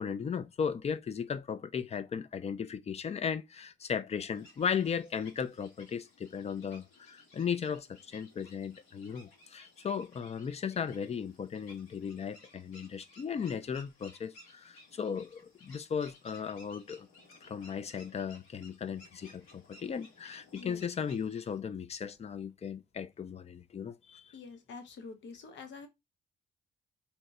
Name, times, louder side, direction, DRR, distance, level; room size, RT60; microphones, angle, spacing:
voice 1, 0.0-17.1 17.4-24.3, left 7 dB, 35° left, 0.4 m, -36 dB
sound 1, 4.3-21.6, left 2 dB, 80° left, 1.5 m, -58 dB
voice 2, 24.3-25.9, left 4 dB, 65° left, 0.9 m, -46 dB
2.8 x 2.2 x 4.1 m
cardioid pair, 90°, 20 cm